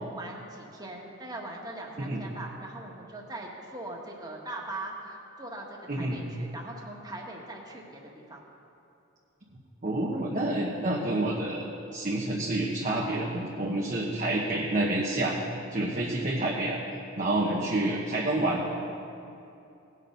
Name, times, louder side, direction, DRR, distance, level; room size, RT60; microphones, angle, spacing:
voice 1, 0.0-8.4 17.4-17.6, right 2 dB, 20° right, -1 dB, 1.6 m, -41 dB
voice 2, 5.9-6.2 9.8-11.7 11.9-15.4 15.7-16.8 17.2-18.6, right 1 dB, 40° right, -3 dB, 1.1 m, -28 dB
18.5 x 6.6 x 5.3 m, 2.8 s
head